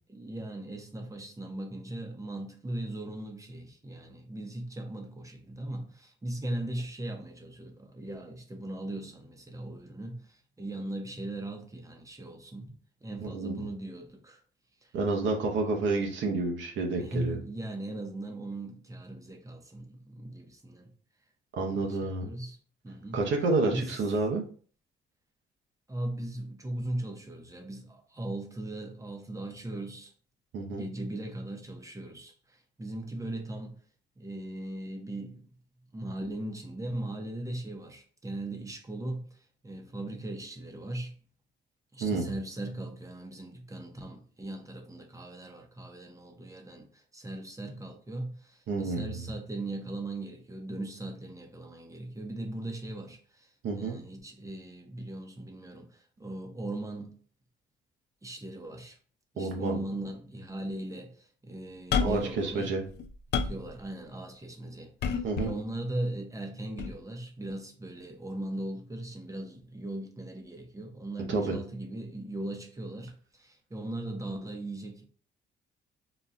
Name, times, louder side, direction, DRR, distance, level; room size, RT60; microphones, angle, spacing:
voice 1, 0.1-12.7 13.0-14.4 14.8-14.9 15.2-15.4 17.0-20.9 21.6-22.6 22.8-23.3 23.6-23.9 25.9-30.1 30.7-33.8 34.2-35.5 35.9-41.2 41.9-57.1 58.2-59.0 59.3-62.7 63.4-75.1, right 1 dB, 15° right, 0.7 m, -39 dB
voice 2, 13.2-13.6 14.9-17.4 21.5-22.3 23.1-24.4 30.5-30.8 42.0-42.3 48.7-49.3 53.6-54.0 59.4-59.8 62.0-62.8 65.2-65.5 71.3-71.6, right 3 dB, 70° right, 0.7 m, -29 dB
sound 1, 61.9-62.3 62.9-63.7 65.0-65.6 66.8-66.9, left 6 dB, 60° left, 0.4 m, -29 dB
4.0 x 2.2 x 2.5 m
cardioid pair, 90°, 20 cm